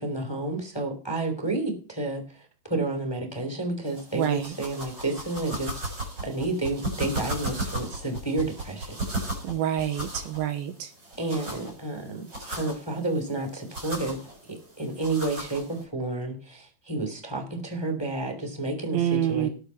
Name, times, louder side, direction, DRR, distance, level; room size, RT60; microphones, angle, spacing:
voice 1, 0.0-5.9 6.2-9.0 11.2-14.2 14.5-19.5, right 2 dB, 10° left, 3 dB, 2.2 m, -30 dB
sound 1, 3.9-15.8, right 1 dB, 35° right, 7.0 m, -36 dB
voice 2, 4.1-4.6 9.4-10.9 18.9-19.5, right 10 dB, 75° right, 7 dB, 3.0 m, -27 dB
18.5 x 6.5 x 5.8 m, 0.39 s
omnidirectional pair, 4.5 m